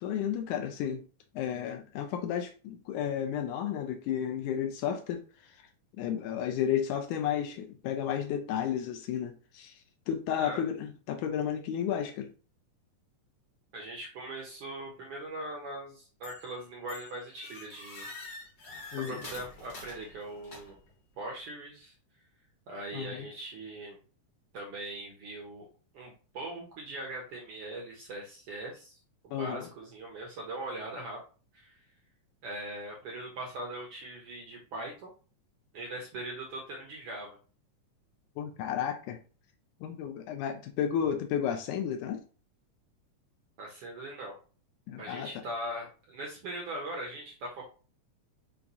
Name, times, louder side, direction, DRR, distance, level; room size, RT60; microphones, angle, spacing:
voice 1, 0.0-1.0 1.4-5.6 6.0-9.8 10.1-12.3 18.9-19.2 22.9-23.3 29.3-29.7 38.4-39.2 39.8-42.2 44.9-45.3, left 9 dB, 80° left, 1.9 m, -32 dB
voice 2, 13.7-18.1 19.1-20.8 21.2-21.9 22.7-24.0 24.5-25.7 25.9-29.0 29.2-31.2 31.5-31.8 32.4-35.1 35.7-37.4 43.6-44.4 45.0-47.6, right 1 dB, 70° right, 1.4 m, -40 dB
sound 1, 16.2-16.6 16.9-20.9, left 2 dB, 45° left, 1.3 m, -46 dB
5.7 x 2.4 x 3.9 m
omnidirectional pair, 3.7 m